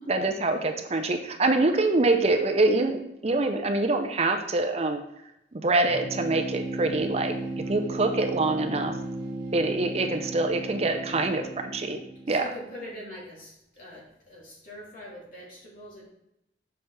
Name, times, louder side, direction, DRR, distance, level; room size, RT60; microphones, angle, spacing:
voice 1, 0.1-5.0 5.5-7.4 7.7-9.0 9.5-12.0 12.3-12.5, right 2 dB, 35° right, 5 dB, 0.5 m, -25 dB
sound 1, 5.9-12.5, right 2 dB, 85° right, 1.1 m, -35 dB
voice 2, 6.7-7.0 7.6-7.9 12.3-16.0, equal, 50° left, -5 dB, 2.7 m, -44 dB
7.2 x 5.7 x 3.3 m, 0.82 s
head